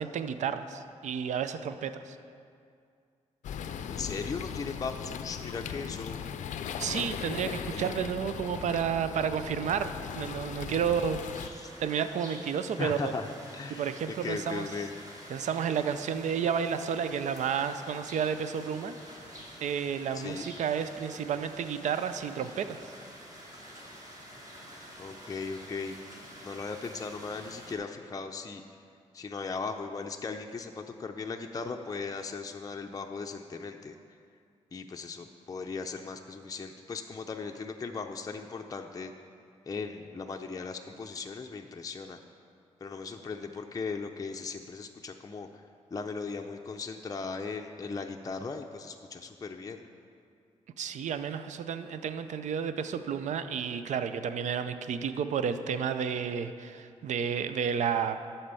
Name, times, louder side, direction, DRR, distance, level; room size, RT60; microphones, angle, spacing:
voice 1, 0.0-2.2 6.8-11.2 11.8-13.1 13.8-14.7 15.3-19.3 19.6-22.9 50.8-58.2, right 7 dB, 75° right, 10 dB, 0.5 m, -31 dB
sound 1, 3.4-11.5, left 7 dB, 90° left, 0.4 m, -38 dB
voice 2, 3.9-6.2 6.8-7.0 7.7-7.9 11.5-11.7 12.8-13.9 14.2-15.0 20.1-20.5 25.0-26.0 26.4-28.6 29.1-34.0 34.7-39.1 39.7-42.2 42.8-45.6 45.9-49.9, left 4 dB, 30° left, 3 dB, 0.5 m, -38 dB
sound 2, 11.2-27.8, equal, 30° right, 2.2 m, -48 dB
12.0 x 4.3 x 6.8 m, 2.3 s
cardioid pair, 75°, 12 cm